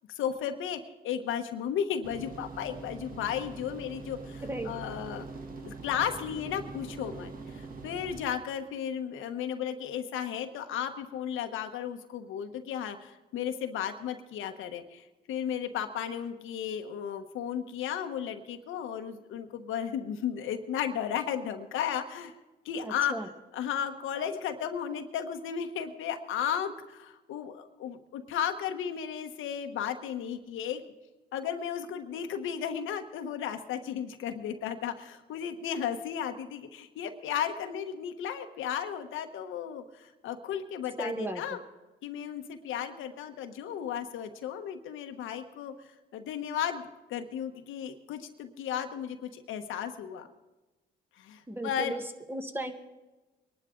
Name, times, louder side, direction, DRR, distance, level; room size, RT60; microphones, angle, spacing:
voice 1, 0.1-5.3 5.6-22.3 22.6-23.1 23.5-30.8 31.3-41.6 42.0-45.7 46.1-46.8 47.1-50.3 51.2-52.0, left 8 dB, 85° left, 7 dB, 1.1 m, -34 dB
sound 1, 2.0-8.2, right 4 dB, 45° right, 1.7 m, -43 dB
voice 2, 22.8-23.3 41.0-41.6 51.5-52.7, right 1 dB, 10° right, 6 dB, 1.4 m, -35 dB
22.5 x 11.5 x 3.8 m, 1.1 s
cardioid pair, 90°, 20 cm